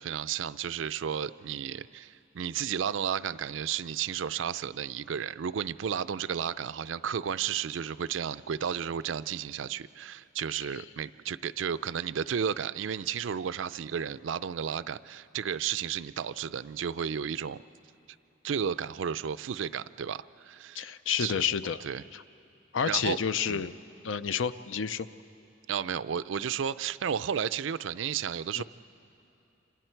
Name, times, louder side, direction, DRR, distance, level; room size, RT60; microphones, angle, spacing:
voice 1, 0.0-17.6 18.4-20.9 21.2-21.4 21.8-22.0 22.8-23.2 23.5-23.6 25.7-28.6, right 8 dB, 75° right, 16 dB, 0.4 m, -33 dB
voice 2, 20.7-21.8 22.1-22.2 22.7-23.7 24.0-25.1 28.6-28.7, left 7 dB, 80° left, 13 dB, 0.5 m, -30 dB
27.5 x 26.0 x 4.6 m, 2.8 s
head